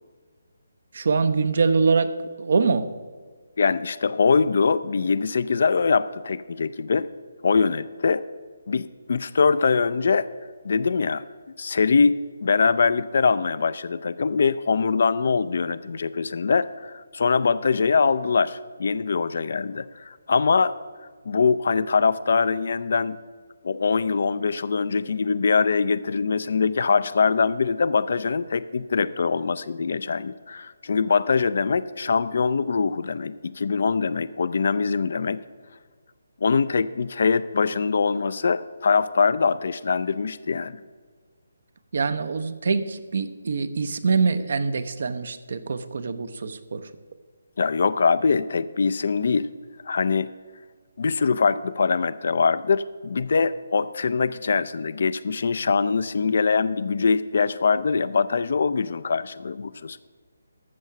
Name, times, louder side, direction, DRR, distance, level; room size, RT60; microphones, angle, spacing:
voice 1, 0.9-2.9 41.9-46.9, right 4 dB, 55° right, 12 dB, 0.7 m, -24 dB
voice 2, 3.6-7.1 7.4-8.2 8.7-10.3 10.6-11.2 11.6-12.1 12.4-20.7 21.3-23.2 23.6-35.4 36.4-40.8 47.6-49.5 49.8-50.3 51.0-60.1, left 5 dB, 55° left, 15 dB, 0.4 m, -23 dB
13.5 x 6.3 x 5.8 m, 1.5 s
figure-of-eight pair, 145°, 0 cm